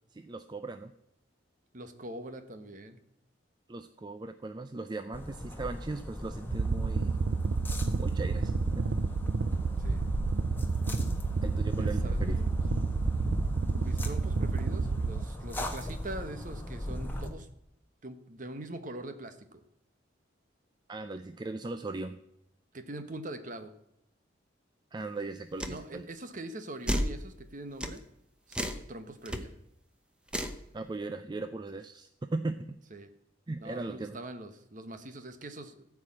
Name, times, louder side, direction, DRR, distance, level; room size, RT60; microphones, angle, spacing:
voice 1, 0.1-0.9 3.7-7.2 7.9-8.8 11.4-12.4 20.9-22.2 24.9-26.1 30.7-32.8 33.5-34.2, right 3 dB, 25° right, 9 dB, 0.4 m, -38 dB
voice 2, 1.7-3.0 9.8-10.1 11.8-12.5 13.7-17.5 18.0-19.6 22.7-23.7 25.6-28.0 28.5-29.5 32.9-33.1 33.6-35.9, right 1 dB, 45° right, 8 dB, 1.1 m, -43 dB
sound 1, 5.1-17.3, left 1 dB, 10° left, 1.3 m, -37 dB
sound 2, 6.5-15.3, right 4 dB, 70° right, 0.6 m, -30 dB
sound 3, 25.6-25.8 26.9-27.2 27.8-28.0 28.5-28.8 29.3-29.4 30.3-30.6, equal, 5° right, 0.8 m, -31 dB
14.5 x 4.8 x 8.5 m, 0.80 s
head